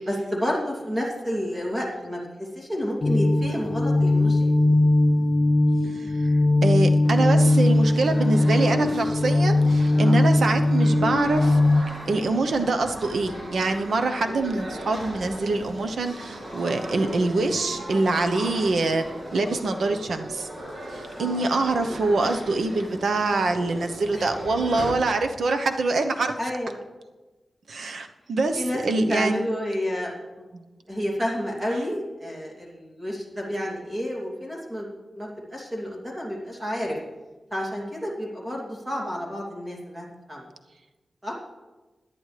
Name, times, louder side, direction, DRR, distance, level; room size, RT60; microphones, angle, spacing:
voice 1, 0.0-4.5 9.9-10.2 21.2-21.4 24.1-24.3 26.4-26.8 28.5-28.8 29.1-30.6 30.9-34.9 35.1-37.0 37.5-40.5 41.2-41.3, equal, 15° right, -3 dB, 2.7 m, -30 dB
sound 1, 3.0-11.8, left 2 dB, 30° left, 0.4 m, -20 dB
voice 2, 5.9-6.3 6.6-11.6 12.1-19.0 19.3-20.5 20.9-26.3 27.7-29.5 30.5-30.6, right 3 dB, 70° right, 6 dB, 0.9 m, -25 dB
sound 2, 7.0-24.9, equal, 50° right, 2.4 m, -38 dB
17.5 x 10.5 x 3.3 m, 1.2 s
wide cardioid pair, 170°, 0 cm